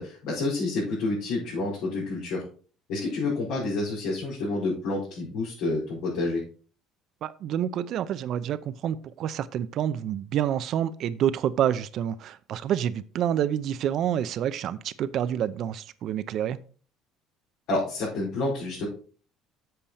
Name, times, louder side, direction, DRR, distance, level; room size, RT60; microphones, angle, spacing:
voice 1, 0.0-2.4 2.9-6.4 17.7-18.9, left 2 dB, 75° left, -7 dB, 4.4 m, -29 dB
voice 2, 7.2-16.6, right 10 dB, 55° right, 15 dB, 0.6 m, -28 dB
7.7 x 6.8 x 4.3 m, 0.40 s
cardioid pair, 105°, 0 cm